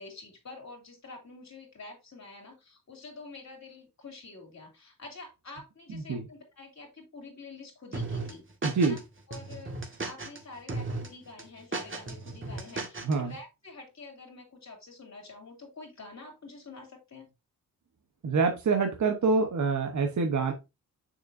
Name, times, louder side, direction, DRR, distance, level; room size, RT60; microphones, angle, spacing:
voice 1, 0.0-8.4 8.8-9.0 9.3-9.8 10.0-17.3, left 3 dB, 50° left, 1 dB, 2.9 m, -47 dB
voice 2, 5.9-6.2 8.6-9.0 13.0-13.3 18.2-20.5, right 4 dB, 55° right, 4 dB, 1.1 m, -26 dB
sound 1, 7.9-9.0 9.3-10.4 10.7-11.1 11.4-13.1, right 3 dB, 35° right, 1.7 m, -35 dB
6.6 x 6.1 x 2.7 m, 0.25 s
cardioid pair, 70°, 35 cm